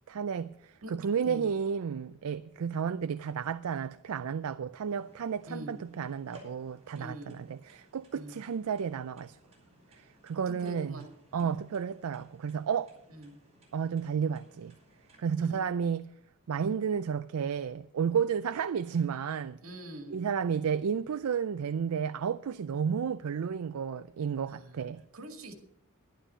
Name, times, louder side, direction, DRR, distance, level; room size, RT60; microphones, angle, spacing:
voice 1, 0.0-9.4 9.9-11.0 11.3-12.9 13.7-14.8 15.2-16.1 16.5-19.6 20.1-25.0, right 7 dB, 85° right, 0.4 m, -32 dB
sound 1, 4.9-15.2, equal, 30° right, 4.5 m, -61 dB
voice 2, 6.9-7.3 8.1-8.4 10.5-11.1 11.4-11.5 13.1-13.3 15.4-15.6 19.6-20.2 24.5-24.9 25.1-25.5, equal, 70° right, 2.2 m, -44 dB
11.5 x 11.5 x 5.6 m
head